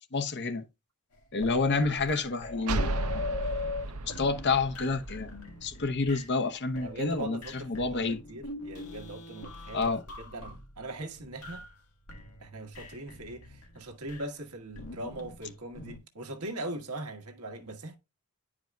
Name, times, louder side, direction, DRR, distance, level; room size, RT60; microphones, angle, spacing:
voice 1, 0.1-0.6 1.3-3.2 4.0-8.2 9.7-10.0, left 4 dB, 50° left, 0.8 m, -29 dB
sound 1, 1.1-6.5 6.7-11.8 12.1-14.3 14.7-16.0, left 3 dB, 85° left, 1.8 m, -42 dB
sound 2, 2.7-6.2, right 2 dB, 70° right, 0.7 m, -34 dB
voice 2, 6.7-9.9 10.3-11.7 12.1-18.0, right 1 dB, 90° right, 1.5 m, -41 dB
10.5 x 4.8 x 2.3 m
head